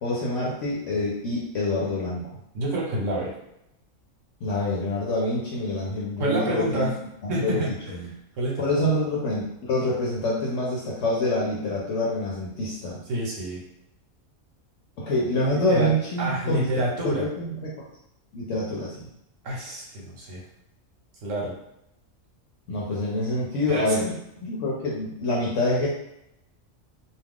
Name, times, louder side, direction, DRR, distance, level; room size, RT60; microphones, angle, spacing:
voice 1, 0.0-2.3 4.4-6.9 7.2-8.1 8.6-13.0 15.0-16.7 17.0-17.9 18.3-19.1 22.7-25.9, left 1 dB, 70° left, -5 dB, 0.9 m, -26 dB
voice 2, 2.5-3.3 6.2-6.9 7.3-7.7 8.3-8.7 13.1-13.6 15.5-15.9 16.2-17.3 19.4-20.4 21.2-21.5 23.7-23.9, right 1 dB, 70° right, -3 dB, 1.2 m, -27 dB
2.4 x 2.3 x 3.5 m, 0.81 s
omnidirectional pair, 1.4 m